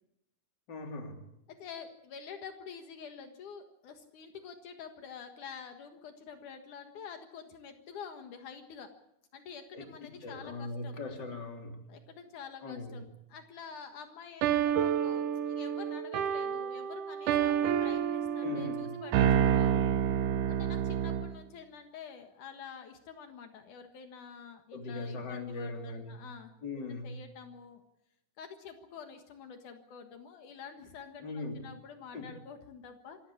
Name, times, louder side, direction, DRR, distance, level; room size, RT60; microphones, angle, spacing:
voice 1, 0.7-1.2 9.7-11.8 12.6-13.1 18.4-18.9 24.7-26.3 26.6-27.2 31.2-31.7 32.1-32.3, left 3 dB, 35° left, 3 dB, 3.7 m, -40 dB
voice 2, 1.5-8.9 9.3-11.0 11.9-19.9 20.5-27.8 28.4-33.2, left 6 dB, 75° left, 6 dB, 3.1 m, -48 dB
sound 1, 14.4-21.4, right 9 dB, 80° right, 2.5 m, -29 dB
27.0 x 16.0 x 8.6 m, 0.81 s
omnidirectional pair, 3.6 m